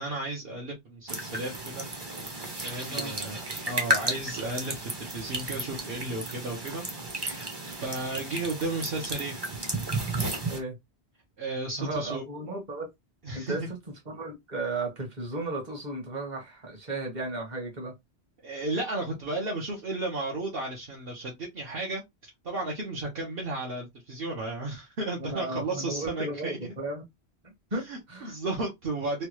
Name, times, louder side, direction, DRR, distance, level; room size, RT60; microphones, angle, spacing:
voice 1, 0.0-1.8 2.6-6.8 7.1-9.4 11.4-12.2 13.2-13.6 18.4-22.0 22.4-26.7 27.9-29.3, right 2 dB, 60° right, 1.0 m, -34 dB
sound 1, 1.1-10.6, right 1 dB, 25° right, 0.7 m, -33 dB
voice 2, 10.4-10.8 11.8-12.9 13.3-13.8 14.0-17.9 25.2-27.0 27.7-28.3, right 2 dB, 45° right, 1.3 m, -34 dB
3.2 x 2.3 x 2.9 m
omnidirectional pair, 1.1 m